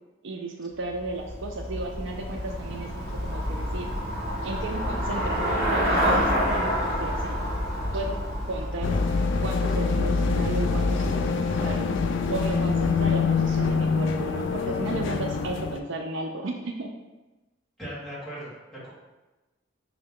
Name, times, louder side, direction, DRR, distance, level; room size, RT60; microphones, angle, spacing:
voice 1, 0.2-3.9 4.4-7.4 7.9-8.2 8.5-9.0 9.4-11.3 11.6-11.9 12.3-16.9, right 2 dB, 65° right, 2 dB, 0.4 m, -34 dB
Traffic noise roadway noise / Bicycle, 0.9-10.0, equal, 40° right, 1.1 m, -28 dB
sound 1, 8.8-15.8, left 4 dB, 65° left, 0.3 m, -25 dB
voice 2, 17.8-18.9, equal, ahead, -10 dB, 1.5 m, -38 dB
5.7 x 2.1 x 3.6 m, 1.1 s
head